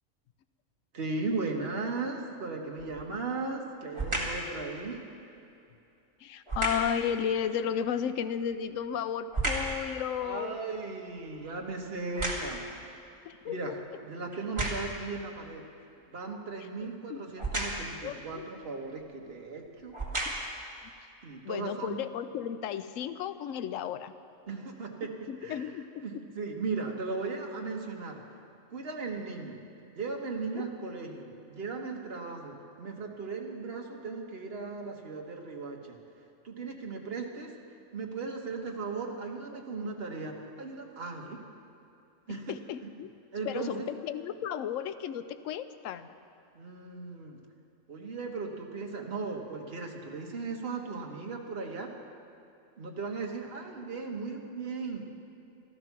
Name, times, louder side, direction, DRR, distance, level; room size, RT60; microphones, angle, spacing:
voice 1, 0.9-5.0 10.2-12.6 13.5-13.8 14.0-15.6 16.1-20.0 21.2-22.0 24.5-25.1 25.4-25.7 26.0-28.2 28.7-29.6 30.0-36.0 36.4-37.5 37.9-41.4 42.3-42.9 43.3-43.9 46.5-47.4 47.9-51.9 52.8-55.0, right 4 dB, 45° right, 1 dB, 1.5 m, -37 dB
sound 1, 2.8-3.2 3.9-4.5 6.5-7.0 8.4-9.8 10.3-12.8 13.4-13.5 14.3-15.1 17.4-18.0 19.0-19.1 19.8-20.6 21.3-21.4, right 2 dB, 20° right, 1.8 m, -33 dB
voice 2, 6.2-10.5 13.3-13.6 17.1-17.3 18.0-18.5 20.2-20.7 21.4-24.1 25.3-26.2 30.5-30.7 42.3-43.1 43.4-46.1, left 8 dB, 70° left, 11 dB, 0.9 m, -34 dB
13.5 x 12.5 x 6.0 m, 2.7 s
omnidirectional pair, 1.5 m